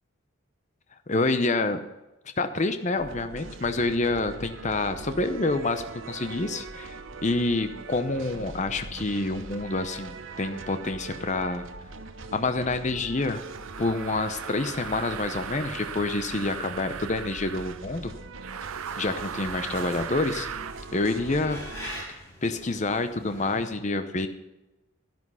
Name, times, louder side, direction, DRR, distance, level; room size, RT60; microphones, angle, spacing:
voice 1, 1.1-1.8 2.4-11.7 12.3-13.4 13.8-18.1 19.0-20.5 20.9-21.6 22.1-24.3, left 2 dB, 35° left, 9 dB, 0.7 m, -28 dB
sound 1, 3.0-22.0, right 3 dB, 65° right, 0.9 m, -42 dB
sound 2, 13.2-17.8 18.4-20.8, right 8 dB, 85° right, 0.6 m, -38 dB
sound 3, 18.6-23.7, equal, 15° left, 4.9 m, -44 dB
12.5 x 11.0 x 5.6 m, 1.0 s
head